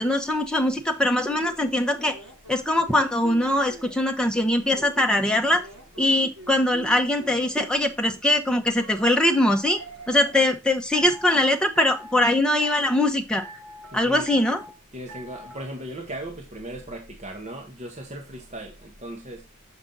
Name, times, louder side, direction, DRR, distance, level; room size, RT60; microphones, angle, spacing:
voice 1, 0.0-2.2 2.5-5.6 6.0-9.8 10.1-13.4 13.9-14.6, left 1 dB, 5° left, 0.9 m, -22 dB
sound 1, 1.1-4.0 4.6-7.5 8.8-10.5 10.9-11.4 11.8-12.3 12.6-13.1 13.4-14.0 14.3-14.7 15.1-15.6, right 2 dB, 85° right, 3.3 m, -43 dB
voice 2, 13.9-14.3 14.9-19.5, right 1 dB, 35° right, 1.1 m, -37 dB
7.1 x 5.3 x 3.8 m
head